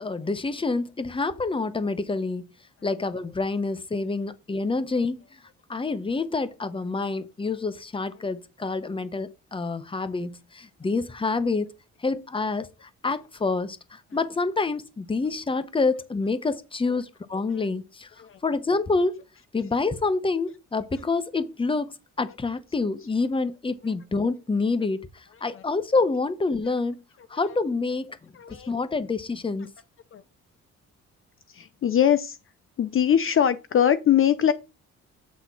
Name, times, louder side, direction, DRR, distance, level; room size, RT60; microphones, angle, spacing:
voice 1, 0.0-2.5 2.8-5.2 5.7-11.7 12.0-18.1 18.4-19.2 19.5-27.0 27.3-28.2 28.5-29.7, left 3 dB, 15° left, 0.8 m, -27 dB
voice 2, 28.3-28.7 30.1-30.2 31.5-32.4 32.8-34.5, left 9 dB, 45° left, 0.6 m, -22 dB
8.4 x 3.6 x 5.7 m
cardioid pair, 90°, 30 cm